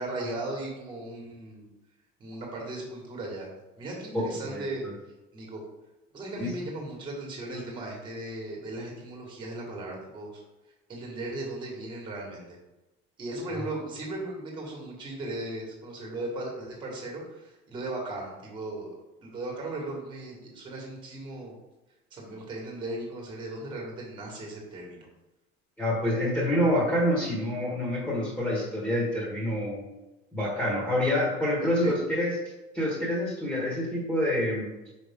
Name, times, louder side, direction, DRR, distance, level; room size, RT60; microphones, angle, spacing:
voice 1, 0.0-1.7 2.2-3.5 3.8-4.9 5.3-5.6 6.1-10.4 10.9-12.6 13.2-19.0 19.2-21.5 22.1-25.1 31.6-31.9, right 2 dB, 25° right, -1 dB, 1.8 m, -37 dB
voice 2, 4.1-4.6 6.4-6.5 13.6-13.7 25.8-29.8 30.3-32.3 32.7-34.7, left 1 dB, ahead, -6 dB, 1.6 m, -27 dB
5.4 x 5.1 x 3.7 m, 1.0 s
cardioid pair, 170°, 21 cm